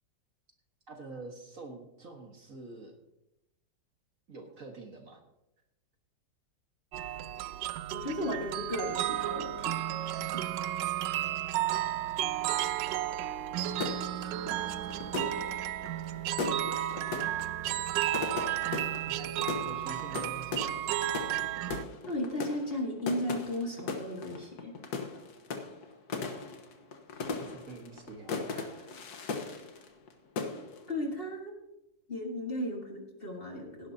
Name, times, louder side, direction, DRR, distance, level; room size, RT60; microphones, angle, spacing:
voice 1, 0.9-2.9 4.3-5.2 18.8-20.7 27.4-28.9, right 3 dB, 50° right, 2 dB, 1.8 m, -46 dB
sound 1, 6.9-21.8, right 12 dB, 85° right, 1.3 m, -33 dB
voice 2, 7.9-9.7 10.0-10.4 22.1-24.7 30.9-31.5 32.1-33.9, left 1 dB, 30° left, 1 dB, 1.8 m, -35 dB
sound 2, 13.7-30.1 30.4-30.9, left 4 dB, 60° left, 1.7 m, -38 dB
17.0 x 11.0 x 2.8 m, 0.90 s
omnidirectional pair, 2.0 m